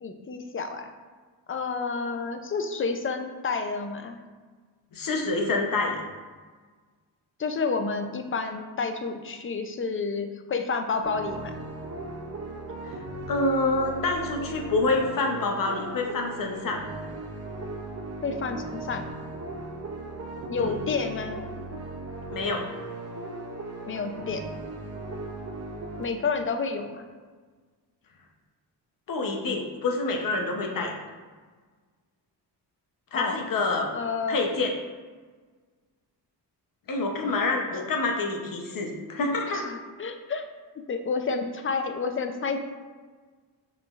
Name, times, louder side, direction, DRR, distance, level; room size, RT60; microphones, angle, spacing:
voice 1, 0.0-0.9 1.5-4.2 7.4-11.5 18.2-19.0 20.5-21.4 23.9-24.5 26.0-27.1 33.1-33.5 33.9-34.4 39.5-40.4 40.9-42.6, left 4 dB, 30° left, 6 dB, 0.4 m, -30 dB
voice 2, 4.9-6.0 12.8-13.0 13.3-16.8 20.6-20.7 22.3-22.6 29.1-30.9 33.1-33.9 34.3-34.7 36.9-39.6, left 3 dB, 50° left, 2 dB, 0.8 m, -27 dB
sound 1, 11.0-26.0, right 2 dB, 35° right, 0.6 m, -37 dB
5.9 x 3.2 x 2.4 m, 1.5 s
cardioid pair, 95°, 41 cm